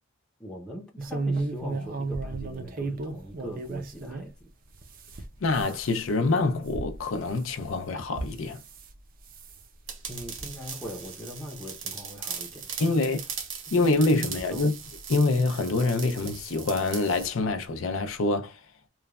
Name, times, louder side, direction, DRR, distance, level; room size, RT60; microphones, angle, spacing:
voice 1, 0.4-4.4 10.1-13.2 13.7-13.8 14.1-14.7, equal, 5° left, 0.6 m, -41 dB
sound 1, 1.0-4.3 4.7-8.9 9.3-9.6 10.2-10.5 10.8-11.1 11.7-11.8 12.2-12.3 13.4-13.5 14.3-15.1 16.2-16.4 16.8-16.9 17.2-17.3, right 3 dB, 45° right, 0.5 m, -35 dB
voice 2, 5.4-8.6 12.8-13.2 13.7-14.7 15.1-18.6, left 3 dB, 75° left, 0.5 m, -25 dB
sound 2, 9.9-17.3, right 7 dB, 70° right, 0.8 m, -39 dB
3.1 x 2.2 x 2.3 m
head